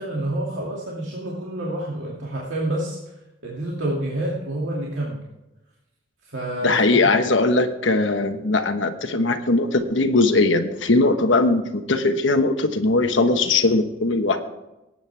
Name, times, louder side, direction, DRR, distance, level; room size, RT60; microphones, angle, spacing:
voice 1, 0.0-3.0 3.4-5.2 6.3-7.0, right 1 dB, 75° right, -5 dB, 2.5 m, -28 dB
voice 2, 6.6-14.4, left 2 dB, 70° left, 7 dB, 1.2 m, -20 dB
18.5 x 9.1 x 3.5 m, 0.98 s
head